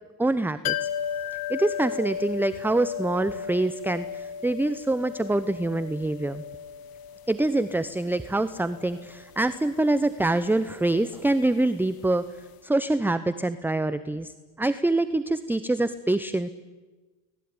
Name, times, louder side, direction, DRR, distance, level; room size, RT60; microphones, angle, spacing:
voice 1, 0.2-0.9 1.5-6.4 7.3-12.2 12.6-16.5, right 2 dB, 5° right, 13 dB, 0.9 m, -25 dB
sound 1, 0.6-12.3 12.5-12.6, left 8 dB, 50° left, 1.5 m, -36 dB
29.5 x 20.0 x 9.7 m, 1.3 s
supercardioid pair, 105°, 46 cm